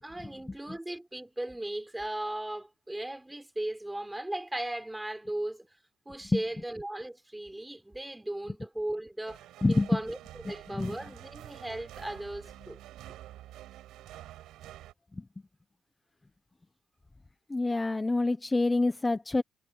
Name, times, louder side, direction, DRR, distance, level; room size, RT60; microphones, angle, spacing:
voice 1, 0.0-5.6 6.0-9.4 9.7-10.2 10.4-12.8, right 1 dB, 10° right, 6.5 m, -37 dB
sound 1, 9.3-14.9, right 14 dB, 90° right, 5.2 m, -48 dB
voice 2, 9.6-10.0 10.7-11.0 15.1-15.3 17.5-19.4, left 2 dB, 20° left, 1.0 m, -27 dB
cardioid pair, 90°, 0 cm